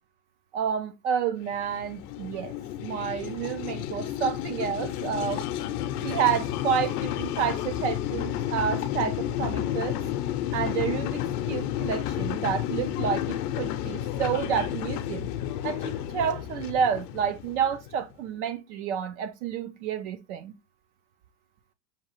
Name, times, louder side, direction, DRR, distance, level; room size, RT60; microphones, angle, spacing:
voice 1, 0.5-2.6 2.8-5.5 6.0-10.0 10.5-15.3 15.6-20.5, right 8 dB, 50° right, 0.5 m, -29 dB
sound 1, 1.4-18.1, left 11 dB, 65° left, 0.7 m, -31 dB
5.8 x 2.4 x 3.0 m
supercardioid pair, 135°, 49 cm